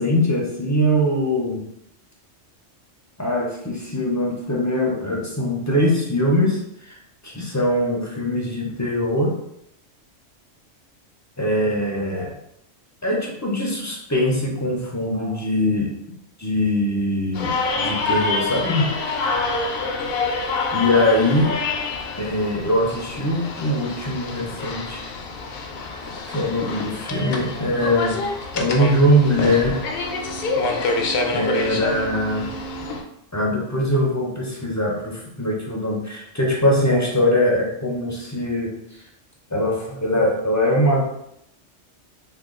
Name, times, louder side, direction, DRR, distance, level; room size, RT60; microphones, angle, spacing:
voice 1, 0.0-1.6 3.2-7.0 7.2-9.3 11.4-12.3 13.0-15.9 16.4-18.9 20.7-21.5 22.2-25.0 26.3-28.2 28.5-29.8 31.3-32.5 33.3-38.7 39.5-41.0, left 1 dB, 25° left, -2 dB, 0.4 m, -22 dB
sound 1, 17.3-33.0, left 3 dB, 60° left, 0.6 m, -27 dB
3.3 x 2.2 x 3.6 m, 0.77 s
omnidirectional pair, 1.3 m